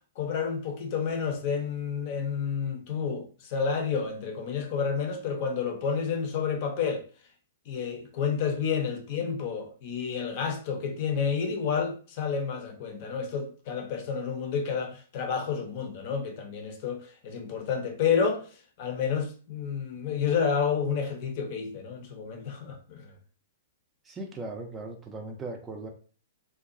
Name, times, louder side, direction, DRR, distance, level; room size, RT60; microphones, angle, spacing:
voice 1, 0.2-7.0 7.7-18.5 18.8-23.1, left 6 dB, 45° left, 0.6 m, -30 dB
voice 2, 24.0-25.9, right 2 dB, 20° right, 0.4 m, -38 dB
2.6 x 2.2 x 2.4 m
figure-of-eight pair, 110°, 0 cm